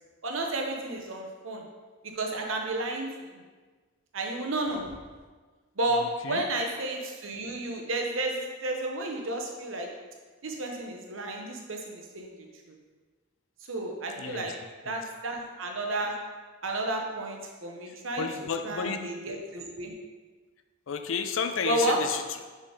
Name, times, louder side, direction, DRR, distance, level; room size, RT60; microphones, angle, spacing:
voice 1, 0.2-1.6 2.0-3.1 4.1-4.9 5.8-9.9 10.4-12.3 13.7-14.5 14.8-16.2 16.6-18.2 18.6-19.9 21.6-22.0, right 2 dB, 65° right, 1 dB, 1.0 m, -31 dB
voice 2, 6.0-6.4 14.2-14.5 14.9-15.0 18.2-19.1 20.9-22.4, left 6 dB, 65° left, 7 dB, 0.5 m, -32 dB
5.2 x 4.3 x 4.9 m, 1.4 s
head